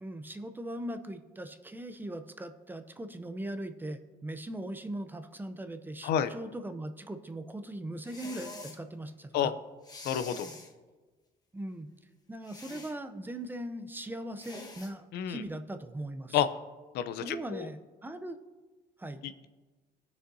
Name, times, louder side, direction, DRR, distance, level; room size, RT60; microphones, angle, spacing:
voice 1, 0.0-9.5 11.5-11.9 12.3-16.4 17.2-18.4 19.0-19.2, right 1 dB, 10° right, 10 dB, 0.6 m, -40 dB
sound 1, 8.0-8.8 9.8-10.7 12.4-13.0 14.4-14.9, left 3 dB, 25° left, 1.1 m, -45 dB
voice 2, 10.0-10.5 15.1-15.4 16.3-16.5 16.9-17.7 19.2-19.5, left 9 dB, 75° left, 12 dB, 0.6 m, -29 dB
18.0 x 6.4 x 2.7 m, 1.3 s
cardioid pair, 110°, 17 cm